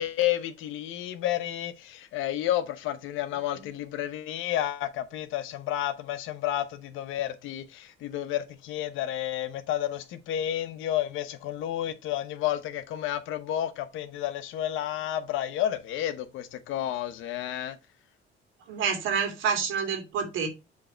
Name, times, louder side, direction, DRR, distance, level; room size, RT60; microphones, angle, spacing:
voice 1, 0.0-17.8, left 12 dB, 85° left, 1.0 m, -31 dB
voice 2, 18.7-20.5, right 6 dB, 90° right, 2.4 m, -28 dB
7.6 x 3.4 x 4.4 m
cardioid pair, 125°, 20 cm